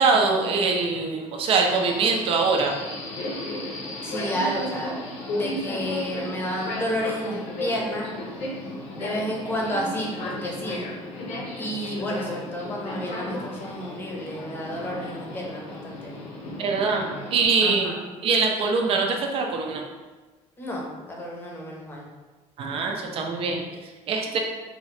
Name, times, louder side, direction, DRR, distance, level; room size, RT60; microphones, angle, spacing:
voice 1, 0.0-2.7 16.6-17.9 18.2-19.8 22.6-24.4, right 4 dB, 45° right, 2 dB, 0.6 m, -23 dB
Subway metro underground, 1.7-17.4, left 1 dB, 60° left, 0.8 m, -34 dB
voice 2, 4.0-4.9 5.4-8.1 9.0-10.9 11.6-16.1 17.6-18.0 20.6-22.0, equal, 15° left, -2 dB, 0.8 m, -31 dB
3.8 x 2.6 x 3.2 m, 1.3 s
cardioid pair, 140°, 13 cm